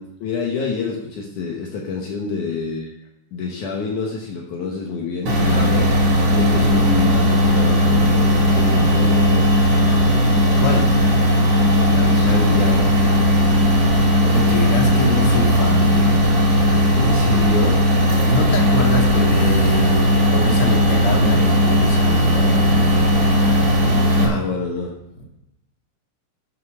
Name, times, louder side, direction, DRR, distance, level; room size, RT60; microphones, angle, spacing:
voice 1, 0.0-3.0 3.3-5.9 6.3-9.4 11.9-13.0 17.0-17.8 24.2-24.9, left 4 dB, 80° left, -1 dB, 1.7 m, -27 dB
sound 1, 5.3-24.3, equal, 40° right, 2.8 m, -16 dB
voice 2, 10.3-10.9 13.9-16.2 18.2-23.1, equal, 45° left, 0 dB, 1.9 m, -25 dB
9.7 x 7.7 x 6.2 m, 0.87 s
omnidirectional pair, 5.6 m